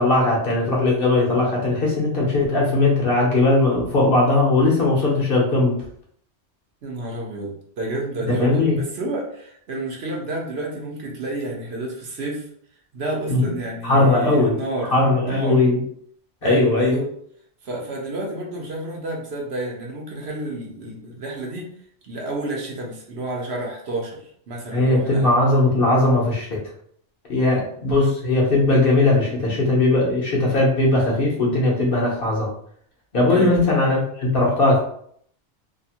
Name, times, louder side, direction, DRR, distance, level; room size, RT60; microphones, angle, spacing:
voice 1, 0.0-5.8 8.3-8.8 13.3-14.6 14.9-15.8 16.4-17.0 24.7-26.6 27.3-32.5 33.1-34.8, left 2 dB, 55° left, -3 dB, 0.9 m, -19 dB
voice 2, 6.8-7.5 7.8-12.5 12.9-14.9 15.2-15.6 16.4-17.0 17.6-21.7 22.0-25.3 27.3-27.6 33.2-33.7, right 2 dB, 65° right, -2 dB, 1.0 m, -30 dB
2.7 x 2.5 x 2.8 m, 0.64 s
omnidirectional pair, 1.2 m